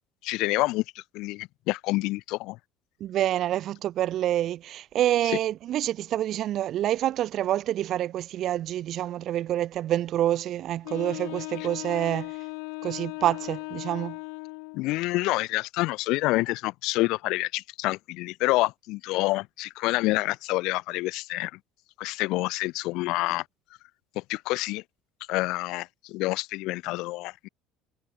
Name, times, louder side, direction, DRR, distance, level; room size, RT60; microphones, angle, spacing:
voice 1, 0.2-2.6 14.7-21.6 22.0-23.4 24.2-24.8 25.3-27.5, left 20 dB, 60° left, 0.7 m, -28 dB
voice 2, 3.0-12.3 12.8-14.2, right 12 dB, 40° right, 0.8 m, -27 dB
Wind instrument woodwind instrument, 10.8-14.9, left 40 dB or more, 85° left, 2.0 m, -37 dB
cardioid pair, 165°, 0 cm